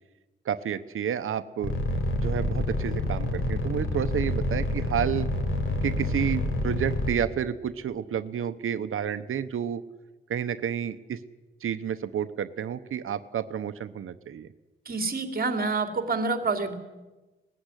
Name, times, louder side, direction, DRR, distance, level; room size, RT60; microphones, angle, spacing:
voice 1, 0.4-1.7 2.2-5.3 5.8-9.8 10.3-11.2 11.6-14.5, right 9 dB, 80° right, 11 dB, 0.9 m, -30 dB
sound 1, 1.6-7.1, left 2 dB, 70° left, 4.0 m, -27 dB
voice 2, 14.8-16.8, right 3 dB, 45° right, 6 dB, 2.9 m, -27 dB
20.0 x 15.5 x 9.9 m, 1.2 s
wide cardioid pair, 120°, 21 cm